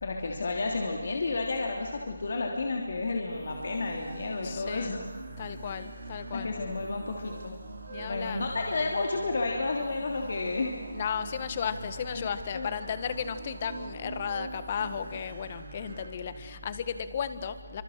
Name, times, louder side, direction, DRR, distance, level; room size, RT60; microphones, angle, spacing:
voice 1, 0.0-5.0 6.3-7.5 8.0-10.8 12.1-12.3 12.5-12.7, left 3 dB, 55° left, 1 dB, 3.1 m, -31 dB
sound 1, 3.3-16.8, right 2 dB, 70° right, 6.4 m, -44 dB
voice 2, 4.4-5.0 5.4-6.6 7.9-8.5 10.9-17.8, left 7 dB, 30° left, 12 dB, 1.5 m, -34 dB
28.5 x 26.0 x 6.6 m, 1.5 s
hypercardioid pair, 170°, 0 cm